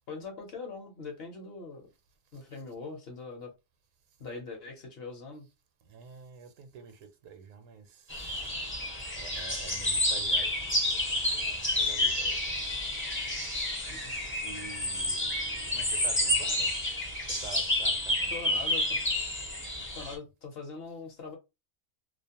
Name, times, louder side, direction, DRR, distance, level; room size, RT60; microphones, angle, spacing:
voice 1, 0.1-1.9 2.3-3.5 4.2-5.5 13.9-14.2 18.3-19.0 19.9-21.4, left 4 dB, 55° left, 0.9 m, -42 dB
voice 2, 5.9-8.4 9.2-12.5 13.2-13.7 14.4-16.7 17.4-18.5, right 5 dB, 75° right, 1.0 m, -48 dB
sound 1, 8.1-20.2, left 1 dB, 15° left, 0.5 m, -30 dB
2.5 x 2.0 x 2.7 m
omnidirectional pair, 1.4 m